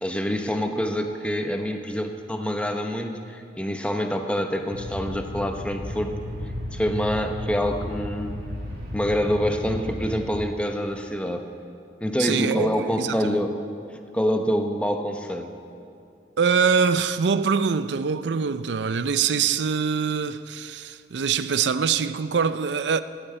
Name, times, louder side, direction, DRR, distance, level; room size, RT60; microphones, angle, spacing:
voice 1, 0.0-6.1 6.7-8.3 8.9-11.5 12.0-13.5 14.1-15.5, equal, 5° left, 0.9 m, -26 dB
sound 1, 4.7-10.3, left 1 dB, 55° right, 2.6 m, -34 dB
voice 2, 12.2-13.2 16.4-23.0, right 6 dB, 85° right, 0.5 m, -24 dB
15.5 x 8.9 x 8.9 m
head